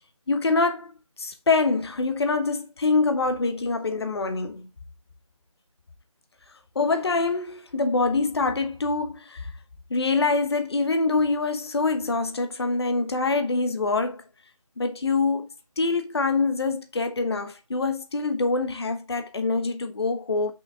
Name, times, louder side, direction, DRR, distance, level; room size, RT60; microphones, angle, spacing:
voice 1, 0.3-0.9 1.2-4.7 6.7-9.5 9.9-14.2 14.8-15.5 15.8-20.5, left 3 dB, 45° left, 1.1 m, -25 dB
5.8 x 5.6 x 3.6 m
figure-of-eight pair, 165°, 18 cm